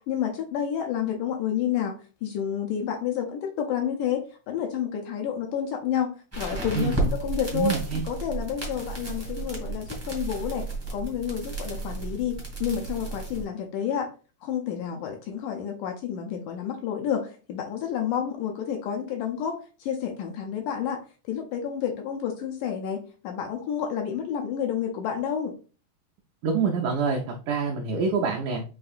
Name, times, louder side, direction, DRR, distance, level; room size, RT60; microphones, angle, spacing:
voice 1, 0.1-1.9 2.2-7.8 8.0-10.7 10.9-14.1 14.4-21.0 21.3-23.0 23.2-25.5, left 8 dB, 80° left, 3 dB, 1.9 m, -30 dB
sound 1, 6.3-13.4, right 2 dB, 20° right, 0.4 m, -33 dB
voice 2, 6.7-7.1 7.5-8.0 26.4-28.6, right 5 dB, 85° right, 0 dB, 1.7 m, -26 dB
7.6 x 2.6 x 2.4 m, 0.36 s
omnidirectional pair, 4.1 m